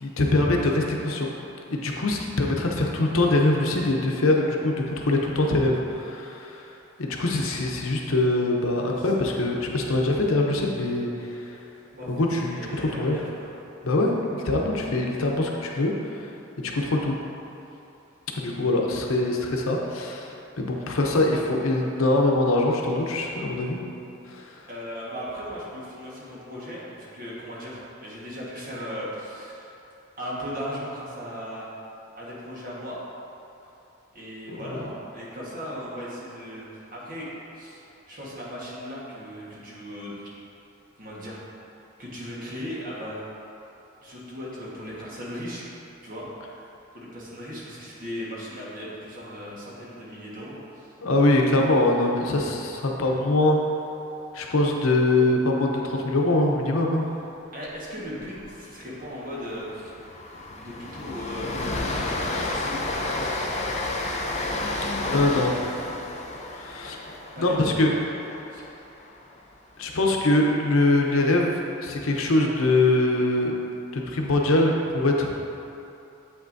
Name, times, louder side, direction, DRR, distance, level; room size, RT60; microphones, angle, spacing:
voice 1, 0.0-1.3 1.7-6.7 7.0-11.6 12.1-13.2 13.8-16.3 16.7-17.2 18.3-23.8 24.3-24.6 34.5-34.8 51.0-53.6 54.3-57.1 65.1-65.5 66.5-67.0 67.4-67.9 69.8-73.5 73.9-75.3, left 2 dB, 85° left, 0 dB, 0.7 m, -23 dB
voice 2, 7.1-7.6 9.0-9.1 11.9-13.5 24.7-29.7 30.2-31.7 32.1-33.0 34.1-40.2 41.0-41.4 42.0-43.2 44.0-45.6 46.0-46.7 46.9-50.9 57.5-59.9 60.6-63.4 67.3-67.7 68.5-68.6, equal, 45° right, -6 dB, 1.4 m, -37 dB
Train, 58.1-58.4 58.7-58.8 59.2-69.4, left 2 dB, 35° left, 0.5 m, -31 dB
7.7 x 5.9 x 2.6 m, 2.8 s
head